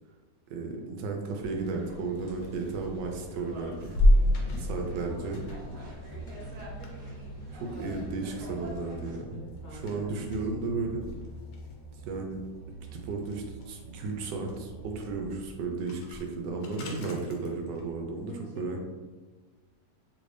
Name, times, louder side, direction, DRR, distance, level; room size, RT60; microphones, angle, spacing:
voice 1, 0.5-3.9 4.7-5.4 7.5-9.4 9.7-11.1 12.0-12.4 12.9-18.8, right 3 dB, 80° right, 2 dB, 1.2 m, -34 dB
sound 1, 1.4-9.2, equal, 55° right, 1.2 m, -47 dB
sound 2, 2.1-18.3, left 1 dB, 85° left, 1.3 m, -33 dB
sound 3, 4.1-15.4, right 2 dB, 25° left, 0.6 m, -45 dB
voice 2, 9.3-11.0 18.3-18.8, right 1 dB, 65° left, -4 dB, 1.2 m, -46 dB
3.2 x 2.6 x 3.2 m, 1.3 s
omnidirectional pair, 1.9 m